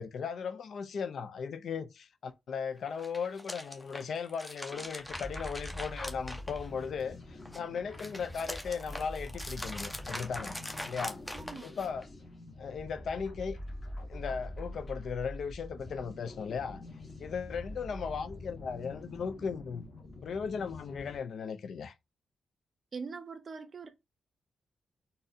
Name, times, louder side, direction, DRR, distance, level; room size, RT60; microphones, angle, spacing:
voice 1, 0.0-10.6 10.9-11.2 11.6-12.1 12.6-13.6 14.1-16.8 17.2-19.9 20.2-21.9, left 6 dB, 65° left, 0.4 m, -37 dB
sound 1, 2.9-7.0 7.4-12.0, left 1 dB, 10° left, 0.7 m, -42 dB
sound 2, 4.7-21.2, left 1 dB, 35° left, 1.3 m, -45 dB
voice 2, 11.3-11.7 22.9-23.9, right 5 dB, 45° right, 0.6 m, -42 dB
3.9 x 2.6 x 2.6 m
cardioid pair, 100°, 0 cm